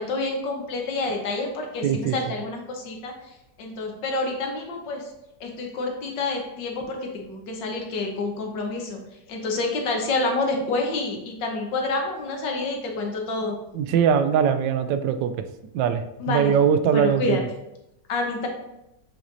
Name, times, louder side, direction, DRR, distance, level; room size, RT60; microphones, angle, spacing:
voice 1, 0.0-5.1 5.4-9.0 9.3-13.6 16.2-16.5 16.9-17.4 18.1-18.5, left 3 dB, 85° left, 2 dB, 1.8 m, -28 dB
voice 2, 1.8-2.1 13.7-15.4 15.7-17.5, right 8 dB, 85° right, 10 dB, 1.3 m, -21 dB
7.1 x 6.0 x 2.7 m, 0.87 s
omnidirectional pair, 1.9 m